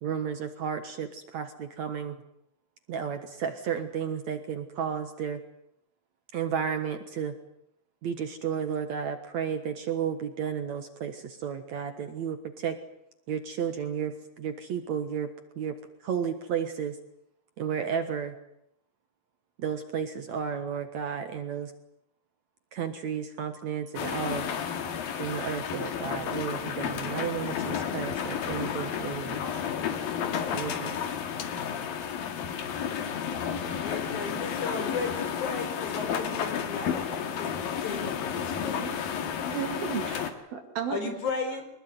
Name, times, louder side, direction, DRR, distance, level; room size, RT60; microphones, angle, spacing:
voice 1, 0.0-2.2 2.9-5.4 6.3-7.3 8.0-12.8 13.3-15.3 15.6-15.8 16.0-17.0 17.6-18.4 19.6-21.7 22.7-24.5 25.2-29.4 30.5-31.0, right 7 dB, 60° right, 8 dB, 2.4 m, -32 dB
sound 1, 23.9-40.3, left 8 dB, 75° left, 3.7 m, -32 dB
voice 2, 33.8-38.9 40.9-41.7, left 4 dB, 55° left, 6 dB, 5.6 m, -35 dB
voice 3, 38.7-39.0 39.3-41.0, right 8 dB, 75° right, 4 dB, 4.3 m, -35 dB
24.5 x 20.5 x 9.5 m, 0.77 s
omnidirectional pair, 4.3 m